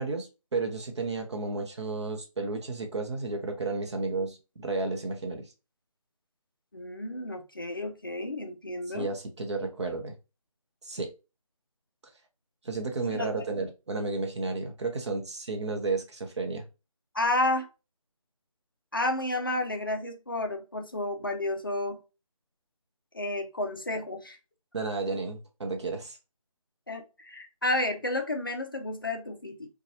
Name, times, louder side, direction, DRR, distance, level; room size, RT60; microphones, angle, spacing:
voice 1, 0.0-5.5 8.9-10.2 10.8-11.1 12.6-16.7 24.7-26.2, right 3 dB, 50° right, 0.7 m, -32 dB
voice 2, 6.7-9.1 13.1-13.4 17.1-17.7 18.9-22.0 23.1-24.4 26.9-29.7, left 2 dB, 40° left, 0.4 m, -31 dB
2.7 x 2.2 x 2.8 m
figure-of-eight pair, 165°, 18 cm